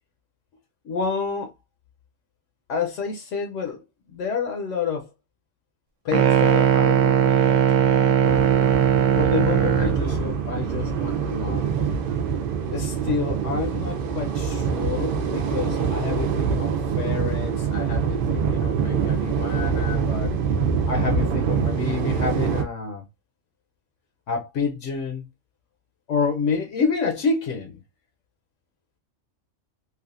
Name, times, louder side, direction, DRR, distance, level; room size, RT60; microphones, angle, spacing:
voice 1, 0.8-1.5 2.7-3.8 4.1-5.1 6.0-8.5 9.2-11.7 12.7-20.3 20.9-23.0 24.3-25.2 26.1-27.8, left 5 dB, 75° left, 1.0 m, -29 dB
sound 1, 6.1-10.1, right 9 dB, 80° right, 0.9 m, -19 dB
sound 2, 8.2-22.6, right 6 dB, 60° right, 0.6 m, -25 dB
3.3 x 2.4 x 2.4 m
omnidirectional pair, 1.3 m